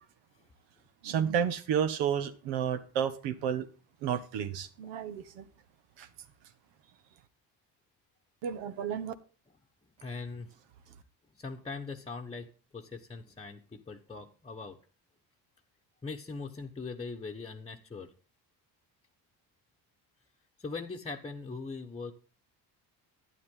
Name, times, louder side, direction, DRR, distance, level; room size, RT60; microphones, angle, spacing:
voice 1, 1.0-3.7 4.0-5.4 6.0-6.1 8.4-9.1, right 8 dB, 85° right, 12 dB, 1.4 m, -31 dB
voice 2, 10.0-10.5 11.3-14.8 16.0-18.1 20.6-22.1, left 4 dB, 15° left, 0 dB, 1.0 m, -41 dB
12.0 x 10.5 x 3.8 m, 0.37 s
cardioid pair, 115°, 41 cm